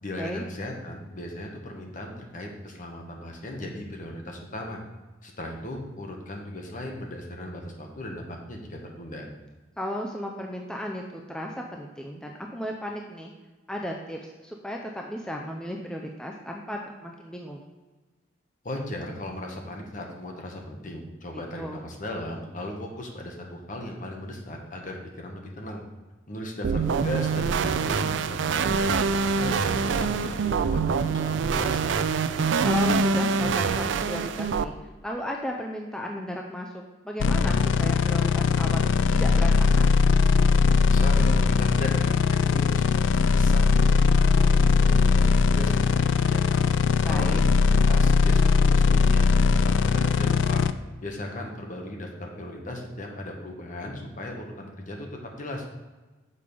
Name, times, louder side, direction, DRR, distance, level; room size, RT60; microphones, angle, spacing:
voice 1, 0.0-4.8 5.2-9.2 18.6-25.8 26.3-31.8 40.9-46.7 47.1-50.6 51.0-55.1 55.4-55.6, left 1 dB, 45° left, 1 dB, 1.3 m, -37 dB
voice 2, 9.8-13.3 13.7-17.6 21.6-21.8 32.6-34.7 35.0-39.9 47.0-47.4, equal, 5° left, 0 dB, 0.5 m, -35 dB
sound 1, 26.6-34.6, right 5 dB, 70° right, 0.4 m, -25 dB
sound 2, 37.2-50.7, left 4 dB, 75° left, 0.4 m, -20 dB
6.8 x 5.0 x 5.3 m, 1.2 s
head